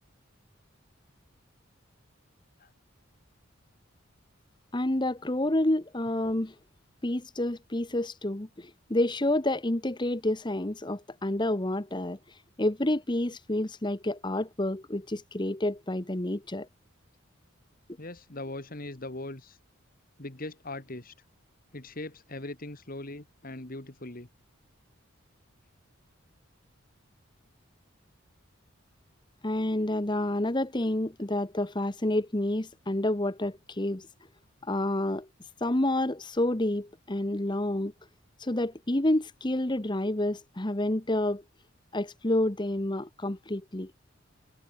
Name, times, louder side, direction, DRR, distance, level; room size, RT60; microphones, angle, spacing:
voice 1, 4.7-6.5 7.0-12.2 12.6-16.7 29.4-34.1 34.6-35.3 35.6-37.9 38.4-41.4 41.9-43.9, left 1 dB, 20° left, 1.1 m, -29 dB
voice 2, 18.0-19.6 20.2-21.1 21.7-24.3, left 2 dB, 45° left, 2.0 m, -40 dB
head